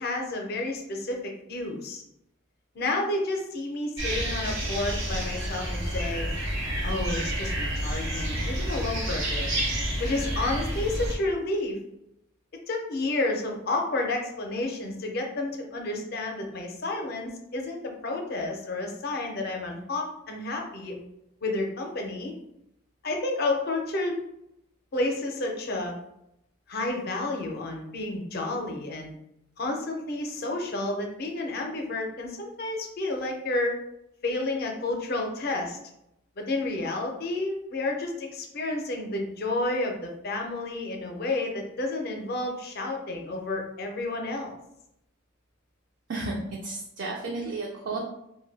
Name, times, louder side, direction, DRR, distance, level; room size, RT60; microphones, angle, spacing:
voice 1, 0.0-2.0 2.7-6.3 6.8-9.5 10.0-11.8 12.7-20.9 21.4-22.3 23.0-24.1 24.9-26.0 26.7-29.1 29.6-33.7 34.2-35.8 36.4-44.5, left 2 dB, 50° left, 2 dB, 0.5 m, -30 dB
sound 1, 4.0-11.1, right 1 dB, 75° right, 0.9 m, -29 dB
voice 2, 46.6-48.0, right 3 dB, 55° right, -1 dB, 0.4 m, -32 dB
2.5 x 2.2 x 3.2 m, 0.81 s
head